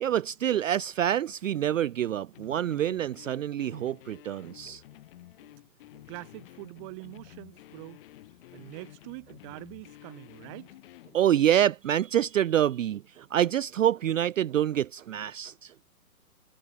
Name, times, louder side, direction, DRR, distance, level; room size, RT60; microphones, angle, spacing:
voice 1, 0.0-4.8 11.1-15.7, right 11 dB, 60° right, 0.6 m, -26 dB
sound 1, 2.3-11.2, left 15 dB, 35° left, 4.2 m, -51 dB
voice 2, 6.1-8.0 8.5-10.8, right 29 dB, 20° right, 1.2 m, -44 dB
hypercardioid pair, 150°, 46 cm